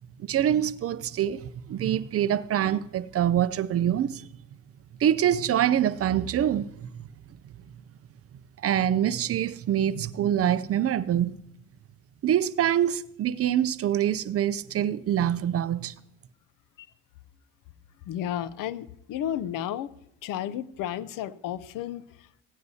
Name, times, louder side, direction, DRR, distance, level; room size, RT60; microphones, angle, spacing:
voice 1, 0.2-4.3 5.0-6.9 8.6-11.4 12.2-15.9, right 10 dB, 45° right, 0.5 m, -25 dB
voice 2, 18.1-19.9 20.2-22.4, left 11 dB, 75° left, 0.7 m, -33 dB
16.5 x 9.4 x 2.8 m
cardioid pair, 95°, 33 cm